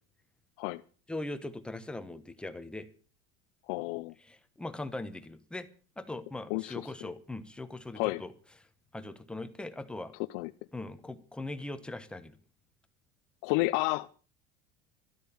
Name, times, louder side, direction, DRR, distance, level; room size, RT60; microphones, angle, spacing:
voice 1, 1.1-2.9 4.2-5.7 6.0-8.3 8.9-10.1 10.7-12.4, left 2 dB, 5° left, 10 dB, 1.1 m, -40 dB
voice 2, 3.7-4.1 6.5-7.1 8.0-8.2 10.3-10.5 13.4-14.1, left 22 dB, 70° left, 10 dB, 0.6 m, -31 dB
13.0 x 12.5 x 7.1 m, 0.40 s
cardioid pair, 160°, 17 cm